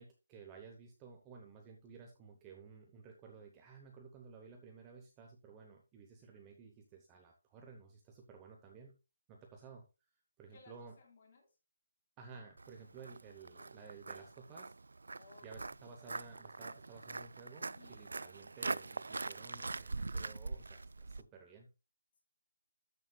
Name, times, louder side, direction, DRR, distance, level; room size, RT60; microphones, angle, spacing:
voice 1, 0.0-9.0 9.3-9.9 10.4-10.9 12.2-14.7 15.4-21.7, right 5 dB, 10° right, 2 dB, 0.8 m, -55 dB
voice 2, 10.5-11.5 15.1-15.7 17.6-18.1, left 4 dB, 30° left, 1 dB, 3.4 m, -62 dB
Walk footsteps, 12.6-21.2, right 3 dB, 75° right, 0.4 m, -43 dB
12.5 x 6.9 x 2.3 m, 0.28 s
hypercardioid pair, 175°, 0 cm